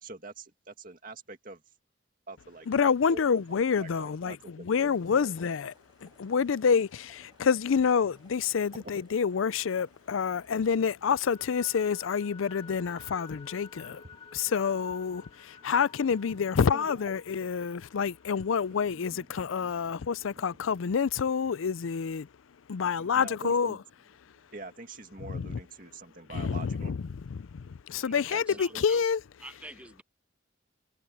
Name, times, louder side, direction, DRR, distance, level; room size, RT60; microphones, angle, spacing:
voice 1, 0.0-1.6 2.3-2.7 3.1-5.3 8.7-8.8 13.8-14.2 15.3-15.7 16.3-16.4 16.7-17.1 18.7-19.7 20.3-20.6 22.8-23.8 24.5-27.0 28.1-28.8, right 2 dB, 45° right, 2.2 m, -46 dB
voice 2, 2.7-5.7 6.0-14.0 14.3-22.3 22.7-23.8 25.3-25.5 26.3-27.0 27.3-29.2, left 6 dB, 90° left, 0.5 m, -28 dB
sound 1, 4.8-10.8, right 3 dB, 25° right, 4.7 m, -63 dB
sound 2, 7.3-10.1 10.5-19.9, left 5 dB, 25° left, 1.3 m, -53 dB
voice 3, 27.9-29.0 29.4-30.0, right 1 dB, 5° right, 0.5 m, -47 dB
head